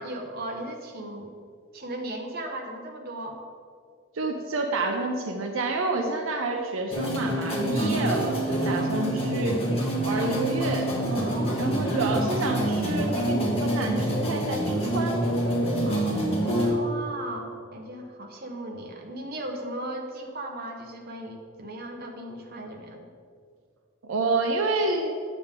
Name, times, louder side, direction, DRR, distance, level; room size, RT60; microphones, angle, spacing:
voice 1, 0.0-1.3 1.7-3.4 7.8-8.2 8.7-8.9 10.0-10.3 10.6-10.7 11.2-11.6 15.8-23.1, right 1 dB, 50° right, 2 dB, 0.9 m, -37 dB
voice 2, 4.1-9.6 10.0-15.2 24.0-25.1, right 3 dB, 75° right, 4 dB, 0.6 m, -29 dB
sound 1, 6.9-16.7, right 1 dB, 30° left, 1.4 m, -26 dB
8.8 x 7.0 x 3.7 m, 2.2 s
head